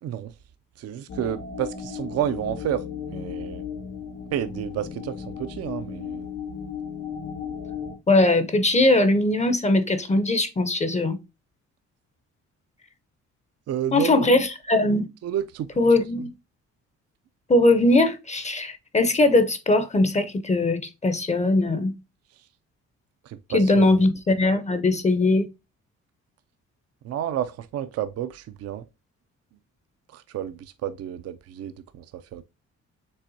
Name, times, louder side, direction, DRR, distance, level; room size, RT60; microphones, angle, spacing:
voice 1, 0.0-0.3 0.8-2.8 3.1-3.6 4.3-6.3 13.7-14.4 15.2-15.8 16.2-16.3 22.4-22.5 23.2-23.9 27.0-28.8 30.1-32.4, right 10 dB, 55° right, 0.5 m, -30 dB
sound 1, 1.1-8.0, left 7 dB, 75° left, 2.3 m, -35 dB
voice 2, 8.1-11.2 13.9-15.1 15.8-16.3 17.5-21.9 23.5-25.5, left 2 dB, 25° left, 0.6 m, -20 dB
5.5 x 3.4 x 2.6 m
cardioid pair, 90°, 30 cm